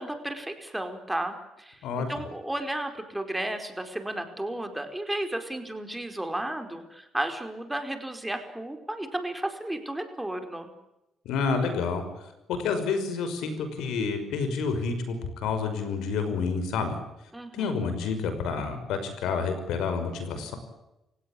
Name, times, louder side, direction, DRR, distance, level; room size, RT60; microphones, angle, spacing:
voice 1, 0.0-1.8 2.1-10.7 17.3-17.8, right 1 dB, 10° right, 7 dB, 4.7 m, -33 dB
voice 2, 11.3-12.0 12.5-17.0 17.5-20.6, left 5 dB, 85° left, 9 dB, 5.8 m, -29 dB
29.5 x 17.0 x 8.7 m, 0.93 s
cardioid pair, 90°, 0 cm